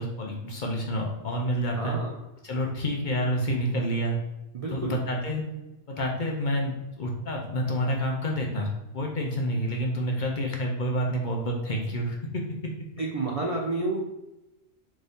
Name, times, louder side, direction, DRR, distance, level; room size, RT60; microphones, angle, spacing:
voice 1, 0.0-2.0 2.4-4.2 4.7-5.5 5.9-12.4, equal, 50° left, 0 dB, 0.7 m, -28 dB
voice 2, 1.8-2.1 4.5-4.9 13.0-14.0, right 2 dB, 50° right, -2 dB, 0.4 m, -30 dB
4.0 x 3.5 x 3.5 m, 0.95 s
omnidirectional pair, 1.3 m